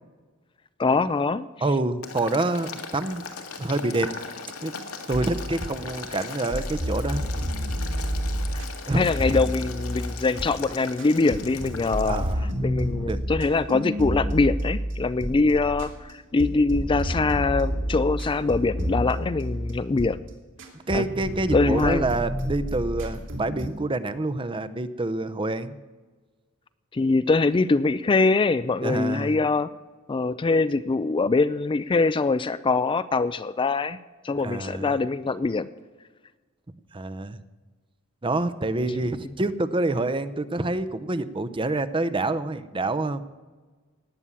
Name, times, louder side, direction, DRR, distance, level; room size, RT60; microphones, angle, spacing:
voice 1, 0.8-1.5 8.5-8.6 8.9-12.2 12.6-20.2 20.9-21.0 21.5-22.1 26.9-29.7 30.1-34.0 34.2-35.7 39.0-39.1, left 3 dB, 25° left, 14 dB, 0.4 m, -23 dB
voice 2, 1.6-3.2 3.6-4.1 4.6-4.7 5.1-7.3 8.9-9.1 12.1-12.5 12.9-13.2 20.9-25.8 28.8-29.4 34.4-34.9 36.9-37.4 38.2-43.2, right 2 dB, 25° right, 13 dB, 0.7 m, -27 dB
Boiling, 2.0-12.3, left 5 dB, 85° left, 2.0 m, -39 dB
sound 1, 5.1-5.9 6.2-10.7 11.0-16.1 16.4-20.3 20.6-23.7, equal, 65° right, 3.0 m, -30 dB
18.5 x 7.2 x 9.8 m, 1.3 s
head